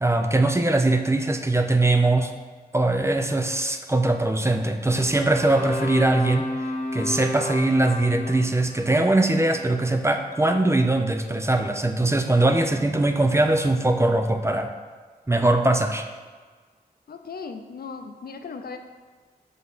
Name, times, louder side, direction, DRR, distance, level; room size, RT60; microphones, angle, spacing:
voice 1, 0.0-2.3 2.7-6.5 6.9-14.7 15.3-16.1, right 2 dB, 15° right, 5 dB, 0.5 m, -21 dB
sound 1, 4.9-11.1, left 1 dB, 40° left, 1.6 m, -33 dB
voice 2, 17.1-18.8, left 5 dB, 75° left, 6 dB, 0.5 m, -37 dB
6.0 x 3.6 x 5.5 m, 1.5 s
wide cardioid pair, 90°, 16 cm